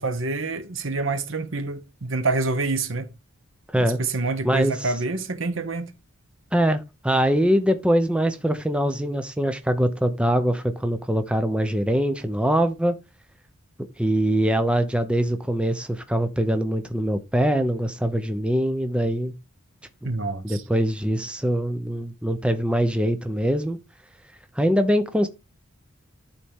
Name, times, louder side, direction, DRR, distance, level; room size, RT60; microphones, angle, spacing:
voice 1, 0.0-3.1 3.8-5.9 20.0-20.6, right 3 dB, 65° right, 1.0 m, -27 dB
voice 2, 4.4-4.9 6.5-13.0 14.0-19.3 20.0-20.1 20.4-23.8 24.6-25.3, equal, 5° right, 0.5 m, -23 dB
11.5 x 4.2 x 3.6 m
head